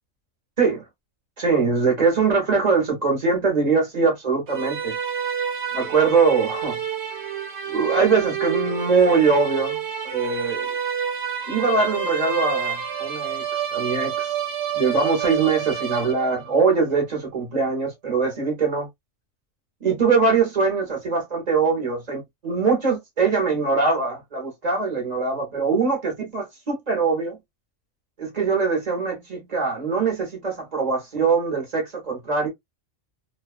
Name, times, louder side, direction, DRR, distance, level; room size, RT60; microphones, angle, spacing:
voice 1, 1.4-4.9 5.7-6.8 7.7-10.7 11.5-13.4 13.7-14.3 14.7-18.9 19.8-27.4 28.2-32.5, right 4 dB, 35° right, 1.0 m, -22 dB
sound 1, 4.5-16.5, right 8 dB, 60° right, 1.1 m, -28 dB
2.6 x 2.2 x 2.3 m
omnidirectional pair, 1.3 m